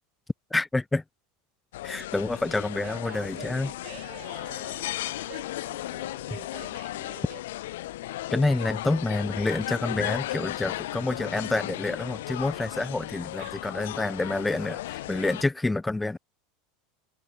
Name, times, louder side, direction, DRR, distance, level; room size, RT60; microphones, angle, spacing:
voice 1, 0.5-1.0 1.8-3.7 8.3-16.2, left 2 dB, 10° left, 0.4 m, -28 dB
sound 1, 1.7-15.4, left 16 dB, 75° left, 0.5 m, -35 dB
voice 2, 2.8-7.4 13.4-13.6, right 25 dB, 60° right, 6.9 m, -47 dB
hypercardioid pair, 90°, 0 cm